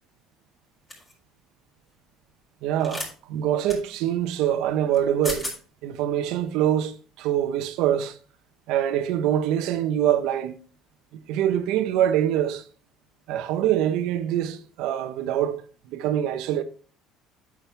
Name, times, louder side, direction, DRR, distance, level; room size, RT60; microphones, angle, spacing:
sound 1, 0.9-1.1 2.8-3.1 3.7-3.8 4.9-5.0 5.2-5.6, left 1 dB, 15° left, 3.9 m, -33 dB
voice 1, 2.6-5.5 5.8-8.2 8.7-10.6 11.1-12.6 13.3-15.6 15.9-16.6, right 11 dB, 75° right, 1.1 m, -24 dB
8.8 x 7.6 x 3.6 m
cardioid pair, 125°, 0 cm